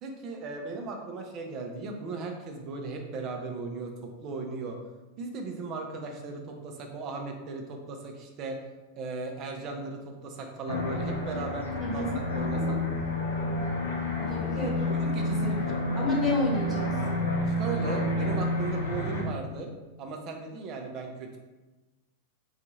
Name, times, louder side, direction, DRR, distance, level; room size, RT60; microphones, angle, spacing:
voice 1, 0.0-4.8 5.2-8.6 9.0-12.8 14.6-15.7 17.6-19.7 20.0-21.4, right 3 dB, 35° right, 3 dB, 0.6 m, -37 dB
sound 1, 10.7-19.2, left 1 dB, 75° left, 0.7 m, -29 dB
voice 2, 11.8-12.1 14.2-14.8 15.3-17.0, left 2 dB, 10° left, -6 dB, 1.2 m, -30 dB
2.7 x 2.4 x 4.0 m, 1.1 s
figure-of-eight pair, 90°, 0 cm